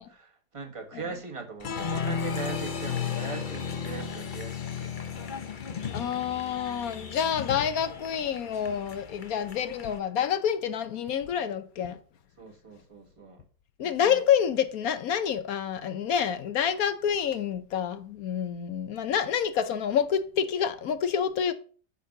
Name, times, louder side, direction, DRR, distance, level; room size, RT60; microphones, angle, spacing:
voice 1, 0.0-4.9 12.4-13.4, right 4 dB, 20° right, 1.4 m, -40 dB
Applause, 1.6-10.0, left 6 dB, 45° left, 0.6 m, -35 dB
voice 2, 5.9-12.0 13.8-21.5, left 8 dB, 65° left, 1.0 m, -28 dB
9.2 x 4.1 x 6.5 m
omnidirectional pair, 2.0 m